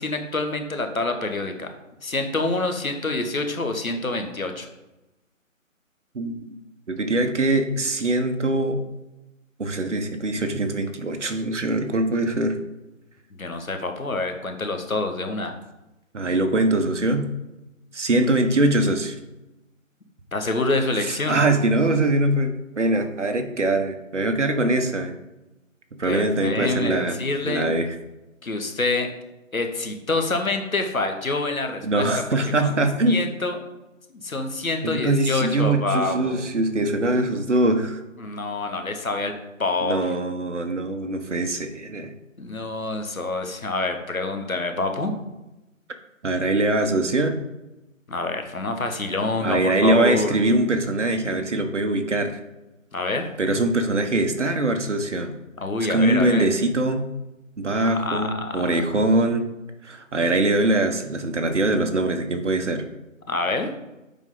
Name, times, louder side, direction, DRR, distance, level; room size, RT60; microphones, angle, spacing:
voice 1, 0.0-1.7 2.0-4.7 13.4-15.6 20.3-21.4 26.0-27.7 28.4-29.1 29.5-32.1 32.6-32.7 33.1-33.6 34.1-36.4 38.2-39.3 39.6-40.0 42.4-45.1 48.1-50.3 52.9-53.2 55.6-56.5 57.8-58.6 63.3-63.7, left 2 dB, 85° left, 6 dB, 1.5 m, -26 dB
voice 2, 6.1-6.5 6.9-8.8 9.6-12.6 16.1-17.3 17.9-19.2 21.0-25.1 26.0-27.2 27.4-27.9 31.8-33.3 34.8-38.0 39.8-42.1 46.2-47.4 49.4-52.4 53.4-55.3 55.9-57.1 57.6-59.5 59.8-62.8, right 2 dB, 60° right, 6 dB, 1.1 m, -22 dB
7.2 x 5.2 x 3.9 m, 1.0 s
figure-of-eight pair, 160°, 41 cm